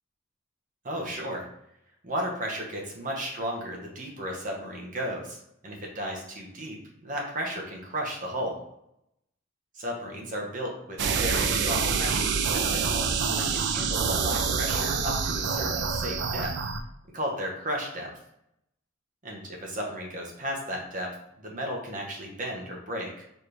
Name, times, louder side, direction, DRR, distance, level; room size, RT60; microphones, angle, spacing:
voice 1, 0.8-1.5 2.0-8.6 9.7-16.5 17.1-18.1 19.2-21.1 21.4-23.3, equal, 40° right, 0 dB, 1.0 m, -34 dB
sound 1, 11.0-16.8, right 5 dB, 60° right, 0.4 m, -27 dB
4.3 x 3.1 x 3.3 m, 0.79 s
head